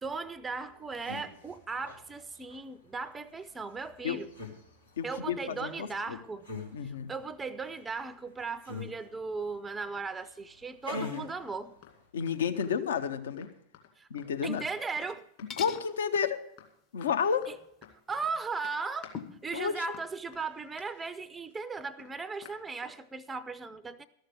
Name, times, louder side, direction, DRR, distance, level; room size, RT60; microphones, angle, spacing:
voice 1, 0.0-4.3 5.0-6.5 6.8-11.7 14.0-14.1 14.4-15.3 17.5-17.6 18.1-19.1 19.4-24.1, right 4 dB, 15° right, 0.5 m, -37 dB
sound 1, 0.6-12.1, left 3 dB, 85° left, 2.4 m, -46 dB
voice 2, 5.0-6.2 6.7-7.1 11.0-11.3 12.1-13.5 14.1-14.6 15.6-16.4 16.9-17.5 19.5-19.8, left 7 dB, 65° left, 0.7 m, -31 dB
sound 2, 11.4-11.9 12.2-12.4 12.6-13.1 13.4-14.3 14.6-14.7 15.0-15.1 15.4-15.9 16.1-16.3 16.6-17.1 17.4-17.5 17.8-18.4 18.6-19.2 19.5-23.0, left 9 dB, 50° left, 2.4 m, -53 dB
sound 3, 14.9-15.2 15.5-15.9 18.1-18.2 19.1-19.5, left 7 dB, 30° left, 0.7 m, -41 dB
13.0 x 6.5 x 7.8 m
figure-of-eight pair, 90°, 0 cm